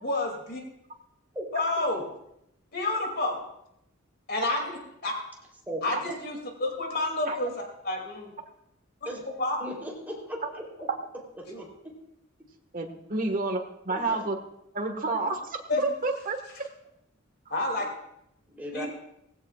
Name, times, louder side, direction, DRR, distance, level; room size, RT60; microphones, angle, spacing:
voice 1, 0.0-0.6 1.5-2.0 2.7-3.4 4.3-4.6 5.0-5.1 5.8-7.5 7.8-8.3 9.4-9.6 11.5-11.6 15.7-15.8 17.5-17.9 18.7-18.9, left 2 dB, 50° left, 1 dB, 2.7 m, -29 dB
voice 2, 9.0-9.3 9.6-10.6 11.4-11.7 13.9-14.3 15.2-15.3 18.5-18.9, equal, 10° right, -2 dB, 3.5 m, -37 dB
voice 3, 12.7-14.4 14.7-16.4, right 3 dB, 40° right, 4 dB, 1.6 m, -30 dB
18.5 x 16.0 x 2.5 m, 0.79 s
head